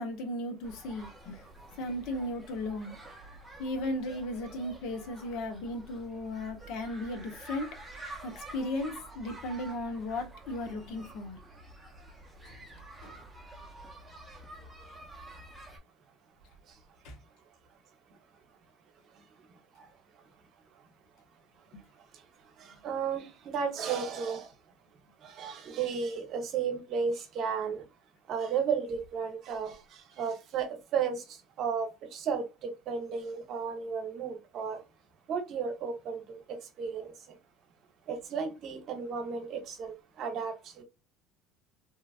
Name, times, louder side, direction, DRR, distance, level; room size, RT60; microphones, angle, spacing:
voice 1, 0.0-1.4 1.7-3.0 3.6-7.7 8.0-11.4 12.4-13.2 17.0-17.2, left 1 dB, 70° left, 0.8 m, -36 dB
sound 1, 0.6-15.8, right 2 dB, 5° right, 0.9 m, -49 dB
voice 2, 22.6-24.5 25.2-27.8 28.3-31.2 31.6-34.8 35.3-37.1 38.1-40.8, right 6 dB, 50° right, 0.8 m, -34 dB
2.9 x 2.4 x 2.3 m
cardioid pair, 135°, 0 cm